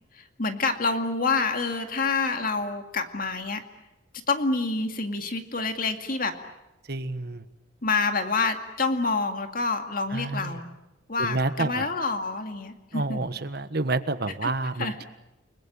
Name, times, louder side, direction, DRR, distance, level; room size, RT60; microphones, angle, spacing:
voice 1, 0.2-3.6 4.3-6.3 7.8-10.7 11.1-13.3 14.4-14.5 14.8-15.1, left 3 dB, 45° left, 6 dB, 2.3 m, -27 dB
voice 2, 6.9-7.4 10.1-10.6 11.2-11.8 12.9-15.0, right 2 dB, 55° right, 11 dB, 1.4 m, -29 dB
30.0 x 20.5 x 8.9 m, 0.98 s
head